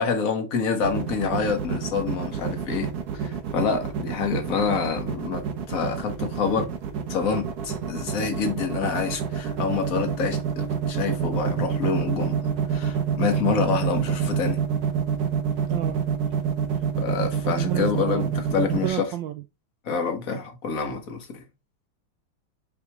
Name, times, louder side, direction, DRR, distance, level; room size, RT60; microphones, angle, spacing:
voice 1, 0.0-2.9 3.1-6.7 7.1-14.6 17.0-19.1 19.8-21.4, left 5 dB, 45° left, 1.6 m, -27 dB
sound 1, 0.8-18.9, right 7 dB, 55° right, 1.4 m, -27 dB
voice 2, 15.7-16.0 17.6-18.3 18.7-19.4, right 13 dB, 75° right, 1.2 m, -31 dB
6.7 x 5.0 x 3.0 m
omnidirectional pair, 2.3 m